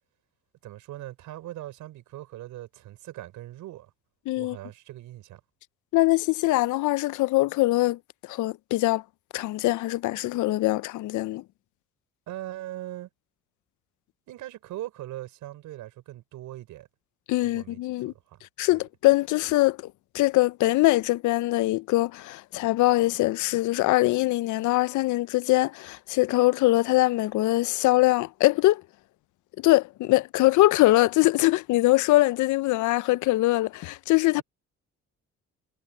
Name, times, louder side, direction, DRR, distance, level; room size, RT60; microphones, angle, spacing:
voice 1, 0.6-3.9 4.4-5.4 12.3-13.1 14.3-16.9 17.4-18.4 18.7-18.8 34.4-34.5, right 14 dB, 90° right, 5.7 m, -40 dB
voice 2, 4.3-4.6 5.9-9.0 9.3-11.4 17.3-18.1 18.6-28.8 29.6-34.4, left 18 dB, 75° left, 0.5 m, -23 dB
cardioid pair, 90°, 30 cm